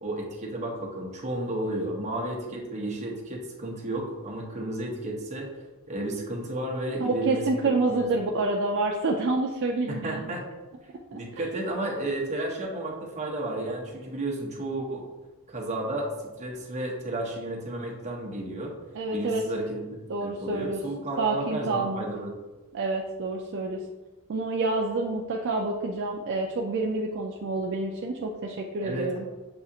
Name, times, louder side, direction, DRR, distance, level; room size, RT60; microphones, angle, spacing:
voice 1, 0.0-5.5 5.9-7.4 7.9-8.3 9.9-10.4 11.1-15.1 15.5-16.1 16.4-18.7 19.1-19.8 20.2-22.4 28.8-29.1, right 1 dB, 30° right, -1 dB, 0.8 m, -32 dB
voice 2, 7.0-10.2 11.1-11.4 18.9-19.4 20.1-20.8 21.2-22.0 22.7-23.8 24.3-29.2, right 3 dB, 55° right, 0 dB, 0.4 m, -28 dB
6.7 x 2.4 x 2.7 m, 1.2 s
head